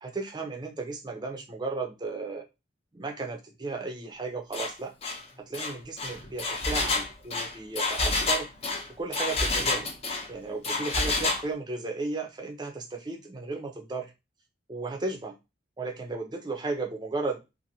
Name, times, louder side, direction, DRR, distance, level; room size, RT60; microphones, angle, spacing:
voice 1, 0.0-2.4 2.9-4.9 5.5-8.5 9.0-9.9 10.3-14.1 14.7-15.3 15.8-17.4, right 3 dB, 20° right, 3 dB, 0.5 m, -34 dB
Engine, 4.5-4.7 5.0-5.2 5.5-10.3 10.6-11.4, left 3 dB, 30° left, 0.5 m, -28 dB
2.8 x 2.5 x 2.6 m, 0.24 s
head